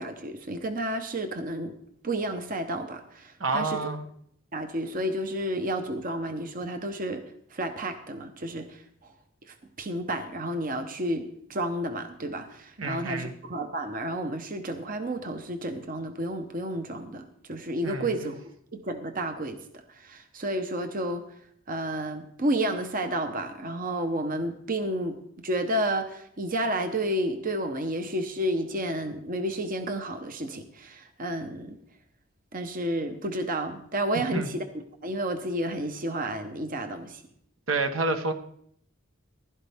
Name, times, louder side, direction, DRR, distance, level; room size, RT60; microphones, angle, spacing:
voice 1, 0.0-1.7 2.0-3.8 4.5-7.2 7.5-9.1 9.5-11.2 11.5-18.4 18.7-19.6 19.9-21.3 21.7-25.2 25.4-31.8 32.5-34.6 35.0-37.2, right 1 dB, 45° right, 1.0 m, -31 dB
voice 2, 3.4-4.0 12.8-13.3 17.8-18.3 34.3-34.5 37.7-38.3, right 3 dB, 75° right, 1.3 m, -28 dB
15.5 x 12.0 x 3.5 m
head